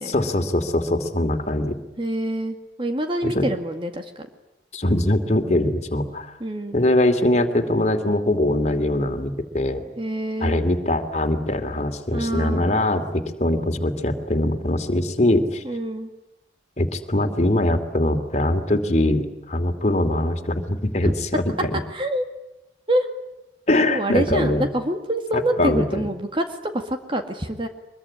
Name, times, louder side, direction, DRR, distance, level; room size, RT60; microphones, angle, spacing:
voice 1, 0.0-1.8 3.2-3.4 4.7-6.3 6.7-9.8 10.4-15.6 16.8-21.7 23.7-24.6 25.3-25.8, left 1 dB, 40° left, 6 dB, 2.7 m, -22 dB
voice 2, 2.0-4.3 6.4-6.8 10.0-10.6 12.1-12.8 15.6-16.1 21.0-21.1 21.9-22.3 22.9-23.1 23.9-27.7, right 1 dB, 30° right, 5 dB, 2.0 m, -26 dB
24.0 x 22.5 x 9.9 m, 0.94 s
head